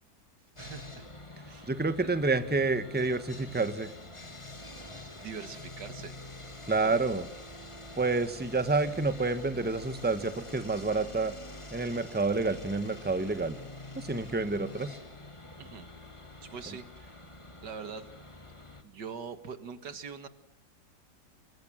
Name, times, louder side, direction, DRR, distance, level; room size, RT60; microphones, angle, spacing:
Sawing, 0.6-18.8, left 1 dB, 15° left, 2.4 m, -46 dB
voice 1, 0.6-1.1 1.4-1.7 2.0-2.2 5.2-6.2 6.8-7.0 15.6-15.9 16.4-17.2 17.6-18.1 18.8-20.3, right 6 dB, 80° right, 11 dB, 2.3 m, -43 dB
voice 2, 1.7-3.9 6.7-7.2 8.0-11.3 11.7-13.6 13.9-15.0, right 3 dB, 5° right, 11 dB, 1.4 m, -29 dB
28.0 x 24.5 x 7.6 m, 0.69 s
omnidirectional pair, 1.8 m